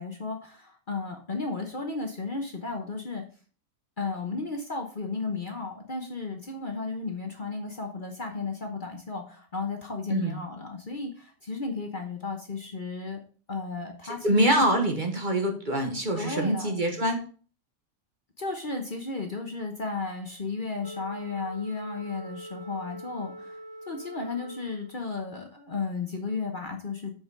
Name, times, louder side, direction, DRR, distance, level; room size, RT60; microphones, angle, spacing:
voice 1, 0.0-3.2 4.0-13.2 13.5-14.5 14.8-14.9 16.2-16.8 18.4-23.5 23.9-27.1, left 4 dB, 40° left, 3 dB, 1.1 m, -34 dB
voice 2, 14.2-17.2, right 1 dB, 35° right, 4 dB, 1.3 m, -24 dB
Wind instrument woodwind instrument, 20.8-25.2, right 1 dB, 15° left, 2.4 m, -43 dB
7.8 x 5.3 x 4.7 m, 0.40 s
omnidirectional pair, 1.5 m